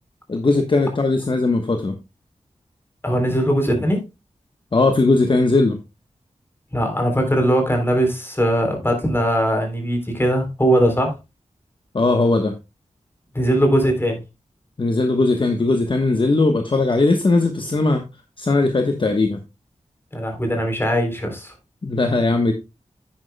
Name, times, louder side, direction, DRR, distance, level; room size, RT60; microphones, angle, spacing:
voice 1, 0.3-2.0 4.7-5.8 11.9-12.5 14.8-18.0 18.4-19.4 21.8-22.5, left 3 dB, 40° left, 6 dB, 1.1 m, -18 dB
voice 2, 3.0-4.0 6.7-11.1 13.3-14.2 20.1-21.5, equal, 20° left, 4 dB, 3.4 m, -20 dB
10.5 x 9.2 x 2.2 m, 0.24 s
wide cardioid pair, 100°, 13 cm